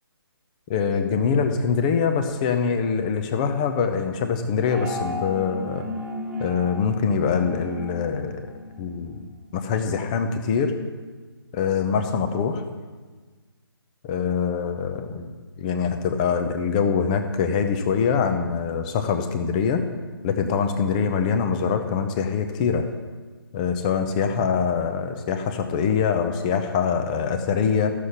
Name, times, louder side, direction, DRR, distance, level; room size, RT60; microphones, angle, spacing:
voice 1, 0.7-5.9 6.4-8.4 8.8-9.2 9.5-10.7 11.5-12.6 14.0-15.3 15.6-19.8 20.2-22.8 23.5-27.9, left 6 dB, 15° left, 7 dB, 0.6 m, -24 dB
sound 1, 4.6-9.2, left 1 dB, 5° right, 1.7 m, -35 dB
14.0 x 6.6 x 5.6 m, 1.4 s
hypercardioid pair, 160°, 13 cm